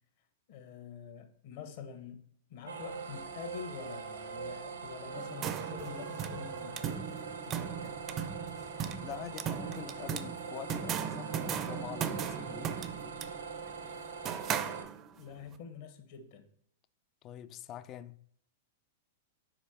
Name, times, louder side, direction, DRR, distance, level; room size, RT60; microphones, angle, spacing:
voice 1, 0.5-2.2 2.5-7.0 7.5-8.2 15.2-16.5, left 7 dB, 60° left, 1.0 m, -46 dB
sound 1, 2.7-14.8, right 5 dB, 80° right, 0.9 m, -43 dB
sound 2, 5.1-15.3, right 8 dB, 35° right, 0.5 m, -38 dB
voice 2, 9.0-12.8 17.2-18.3, left 11 dB, 35° left, 0.4 m, -45 dB
5.1 x 4.6 x 4.4 m
hypercardioid pair, 110°, 0 cm